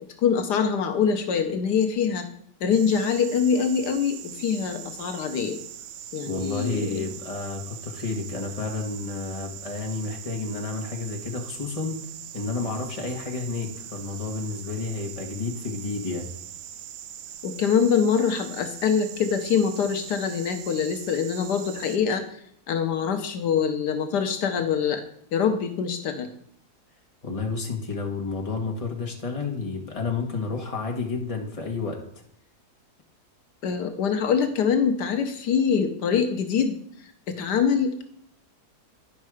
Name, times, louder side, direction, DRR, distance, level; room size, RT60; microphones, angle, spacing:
voice 1, 0.2-2.3 2.6-5.6 6.1-7.1 17.4-22.4 22.7-25.0 25.3-26.3 33.6-38.0, left 7 dB, 75° left, 7 dB, 1.4 m, -24 dB
sound 1, 2.7-22.0, right 10 dB, 80° right, 1.2 m, -41 dB
voice 2, 6.2-12.0 12.3-16.3 27.2-32.0, left 4 dB, 20° left, 1 dB, 1.4 m, -31 dB
10.5 x 5.4 x 4.8 m, 0.65 s
omnidirectional pair, 1.8 m